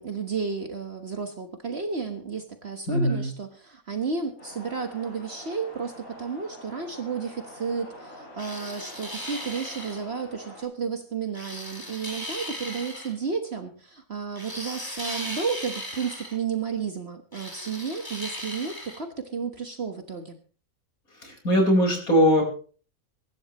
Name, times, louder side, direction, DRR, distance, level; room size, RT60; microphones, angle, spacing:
voice 1, 0.0-20.4, right 5 dB, 50° right, 6 dB, 1.6 m, -32 dB
voice 2, 2.9-3.3 21.2-22.4, equal, 85° left, 2 dB, 5.6 m, -21 dB
sound 1, 4.4-10.6, equal, 65° left, 5.4 m, -46 dB
sound 2, 8.4-10.0 11.3-13.1 14.4-16.4 17.3-19.0, equal, 15° left, 4.3 m, -37 dB
24.0 x 12.0 x 3.1 m, 0.40 s
omnidirectional pair, 1.5 m